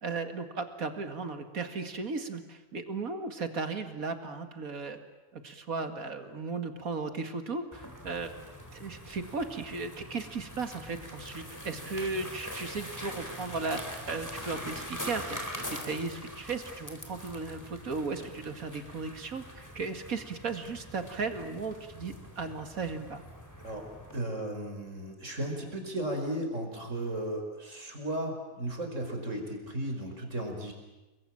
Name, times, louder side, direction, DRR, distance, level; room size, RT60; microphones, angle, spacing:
voice 1, 0.0-5.0 5.3-8.3 8.7-23.2, right 4 dB, 80° right, 8 dB, 2.6 m, -36 dB
sound 1, 7.7-24.2, equal, 10° left, 3.8 m, -43 dB
voice 2, 24.1-30.7, right 1 dB, 60° right, 4 dB, 5.5 m, -35 dB
29.5 x 22.5 x 8.9 m, 1.1 s
omnidirectional pair, 1.5 m